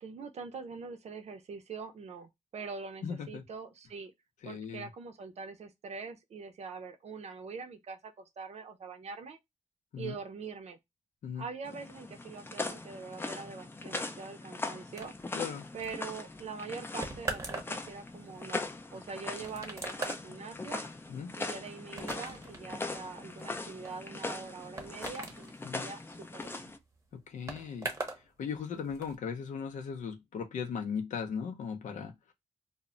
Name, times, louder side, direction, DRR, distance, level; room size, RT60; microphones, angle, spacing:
voice 1, 0.0-4.1 4.4-9.4 10.0-10.8 11.4-15.1 15.7-18.6 18.9-20.8 21.4-26.7 28.7-28.9, right 5 dB, 60° right, 0.5 m, -44 dB
voice 2, 3.0-3.4 4.4-4.9 9.9-10.1 11.2-11.5 15.3-15.7 21.1-21.3 25.6-25.9 27.1-27.9 28.4-32.3, left 6 dB, 80° left, 0.5 m, -38 dB
sound 1, 11.6-26.8, left 3 dB, 20° left, 0.4 m, -40 dB
sound 2, 15.0-28.3 28.5-29.1, right 2 dB, 25° right, 0.7 m, -43 dB
2.1 x 2.1 x 3.6 m
cardioid pair, 85°, 13 cm